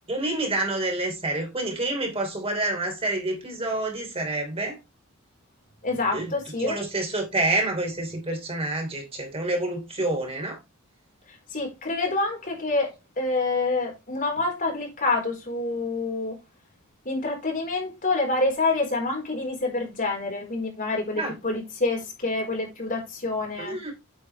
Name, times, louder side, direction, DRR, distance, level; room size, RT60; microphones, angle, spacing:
voice 1, 0.1-4.8 6.1-6.3 6.6-10.6 21.1-21.3 23.6-23.9, right 2 dB, 30° right, 3.1 m, -28 dB
voice 2, 5.8-6.8 11.5-16.4 17.0-23.8, left 3 dB, 40° left, 4.4 m, -27 dB
9.1 x 7.2 x 3.4 m
head